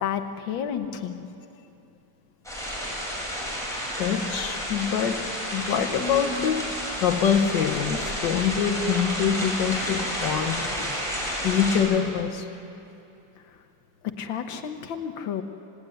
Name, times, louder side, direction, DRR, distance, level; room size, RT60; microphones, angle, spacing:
voice 1, 0.0-1.3 14.2-15.4, left 8 dB, 90° left, 7 dB, 1.8 m, -31 dB
sound 1, 2.4-11.8, equal, ahead, 7.1 m, -31 dB
voice 2, 4.0-6.7 7.0-11.2 11.4-12.5, left 7 dB, 75° left, 6 dB, 1.8 m, -25 dB
26.5 x 17.5 x 9.9 m, 2.8 s
omnidirectional pair, 2.0 m